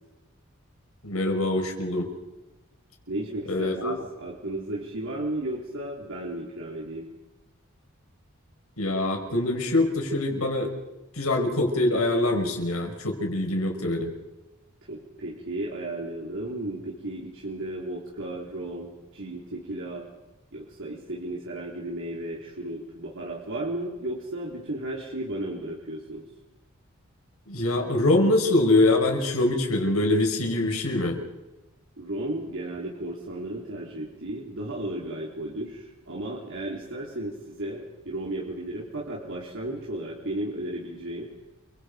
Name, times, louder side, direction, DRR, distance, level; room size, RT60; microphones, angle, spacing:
voice 1, 1.0-2.1 3.5-3.9 8.8-10.7 11.1-14.1 27.5-31.2, left 2 dB, 90° left, 3 dB, 5.7 m, -24 dB
voice 2, 3.1-7.1 14.9-20.1 20.5-26.2 32.0-41.3, right 1 dB, 65° right, -3 dB, 3.9 m, -34 dB
28.5 x 25.0 x 5.2 m, 1.1 s
head